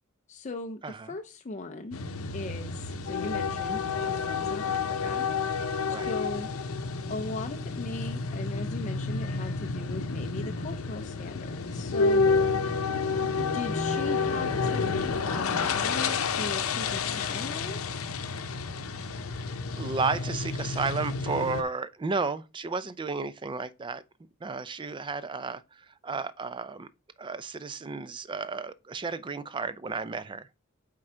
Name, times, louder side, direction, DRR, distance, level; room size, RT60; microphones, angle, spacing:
voice 1, 0.3-2.0 2.3-5.3 5.9-6.5 7.1-12.3 13.5-17.8, left 3 dB, 35° left, 0.5 m, -38 dB
voice 2, 0.8-1.1 5.9-6.1 19.7-24.0 24.4-26.9 27.2-30.5, right 4 dB, 25° right, 0.4 m, -33 dB
sound 1, 1.9-21.6, left 4 dB, 90° left, 0.7 m, -30 dB
7.6 x 3.7 x 4.4 m
head